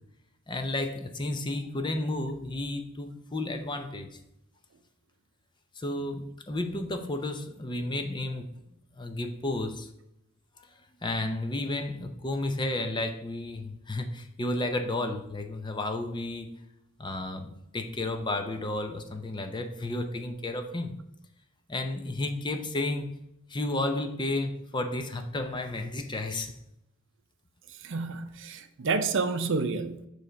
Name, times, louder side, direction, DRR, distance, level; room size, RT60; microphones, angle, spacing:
voice 1, 0.5-4.2 5.8-8.5 9.0-9.9 10.6-16.5 17.0-20.9 21.7-23.1 23.5-26.5, left 2 dB, 20° left, 6 dB, 0.6 m, -32 dB
voice 2, 27.8-30.1, right 4 dB, 60° right, 9 dB, 0.6 m, -29 dB
9.1 x 3.3 x 5.1 m, 0.82 s
head